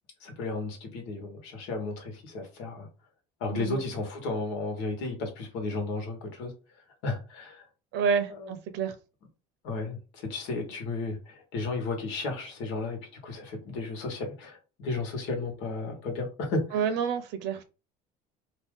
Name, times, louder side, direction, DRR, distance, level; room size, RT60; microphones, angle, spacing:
voice 1, 0.2-2.9 3.4-6.5 7.0-7.6 8.4-8.5 9.6-16.8, left 3 dB, 80° left, 1.3 m, -33 dB
voice 2, 3.5-3.8 7.9-8.9 16.7-17.6, right 6 dB, 70° right, 0.7 m, -28 dB
2.8 x 2.5 x 3.7 m
cardioid pair, 130°, 19 cm